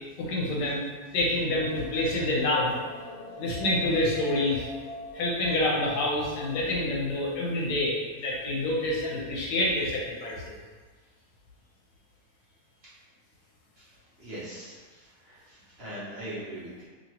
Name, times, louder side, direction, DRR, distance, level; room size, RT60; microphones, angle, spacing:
voice 1, 0.2-2.7 3.4-4.7 5.1-10.5, left 1 dB, 85° left, -3 dB, 1.3 m, -27 dB
sound 1, 1.6-7.4, left 2 dB, 45° left, 0.8 m, -43 dB
voice 2, 13.8-16.9, right 1 dB, 50° right, -9 dB, 0.8 m, -42 dB
3.0 x 2.7 x 2.8 m, 1.4 s
omnidirectional pair, 1.7 m